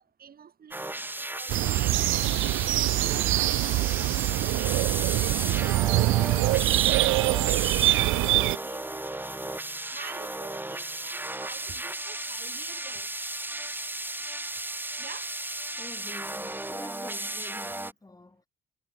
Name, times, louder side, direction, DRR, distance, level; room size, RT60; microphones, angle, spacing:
voice 1, 0.2-3.7 4.6-9.2 9.9-13.1 15.0-15.3, right 7 dB, 50° right, 2.4 m, -48 dB
sound 1, 0.7-17.9, right 1 dB, 10° right, 2.2 m, -35 dB
sound 2, 1.5-8.6, right 17 dB, 85° right, 0.5 m, -24 dB
voice 2, 15.8-18.4, left 2 dB, 20° left, 7.8 m, -47 dB
cardioid pair, 90°, 20 cm